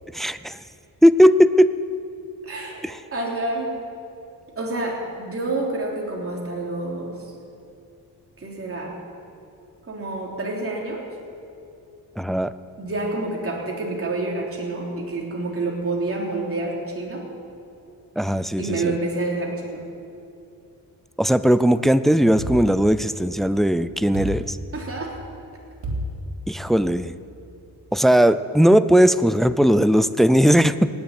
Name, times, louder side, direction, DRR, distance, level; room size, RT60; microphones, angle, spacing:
voice 1, 0.1-0.6 1.0-1.7 2.8-3.0 12.2-12.5 18.2-18.9 21.2-24.6 26.5-27.1 27.9-30.9, equal, ahead, 14 dB, 0.3 m, -18 dB
voice 2, 2.4-2.8 3.1-3.8 4.6-7.3 8.4-9.0 9.9-11.0 12.8-17.3 18.6-19.9 24.7-25.1, right 2 dB, 35° right, -2 dB, 3.6 m, -28 dB
sound 1, 22.4-23.5 24.1-25.2 25.8-26.9, equal, 90° right, 2.8 m, -32 dB
17.5 x 7.2 x 9.6 m, 2.6 s
cardioid pair, 105°, 39 cm